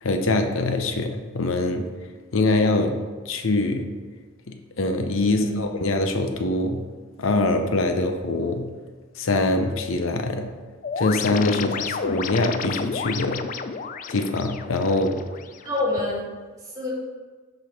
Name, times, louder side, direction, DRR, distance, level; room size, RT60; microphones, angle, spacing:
voice 1, 0.0-1.9 2.3-3.9 4.5-6.9 7.2-8.7 9.2-10.5 11.0-13.5 14.1-15.2, left 2 dB, 80° left, 6 dB, 0.7 m, -24 dB
voice 2, 5.3-5.6 11.6-11.8 15.6-16.3 16.6-16.9, left 2 dB, 15° right, -5 dB, 2.0 m, -28 dB
sound 1, 10.8-15.8, left 5 dB, 40° left, 0.3 m, -31 dB
6.5 x 5.0 x 5.1 m, 1.4 s
head